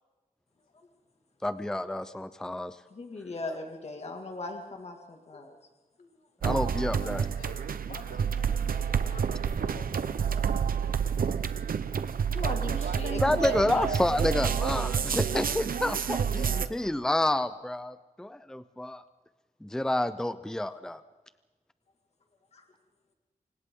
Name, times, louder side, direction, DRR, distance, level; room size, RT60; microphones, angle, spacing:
voice 1, 1.4-2.8 6.4-7.3 13.2-19.0 19.6-21.0, left 1 dB, 5° left, 12 dB, 0.6 m, -29 dB
voice 2, 2.9-5.5 6.0-6.1 12.3-14.1 22.5-22.6, left 3 dB, 45° left, 3 dB, 2.3 m, -37 dB
sound 1, 6.4-16.7, right 7 dB, 80° right, 0.9 m, -29 dB
voice 3, 6.5-7.6 7.9-12.0 12.4-12.7 15.7-16.8, left 3 dB, 80° left, 1 dB, 5.1 m, -50 dB
28.5 x 25.5 x 3.8 m, 1.2 s
wide cardioid pair, 160°, 15 cm